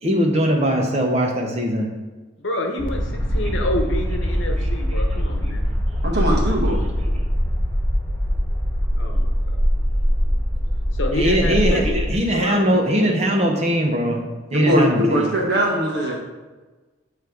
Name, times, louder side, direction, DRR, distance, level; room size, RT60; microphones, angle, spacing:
voice 1, 0.0-1.9 3.4-3.5 4.6-4.7 6.8-6.9 7.1-7.3 11.1-14.2 14.5-15.3, equal, 30° right, 1 dB, 0.9 m, -21 dB
voice 2, 2.4-5.6 8.9-9.6 10.9-11.8 12.3-12.6 15.9-16.2, left 1 dB, 60° left, 2 dB, 1.0 m, -28 dB
sound 1, 2.8-12.1, equal, 10° left, 1.1 m, -22 dB
voice 3, 6.0-6.8 14.5-16.2, equal, 50° right, -1 dB, 1.5 m, -20 dB
9.1 x 3.4 x 4.6 m, 1.2 s
head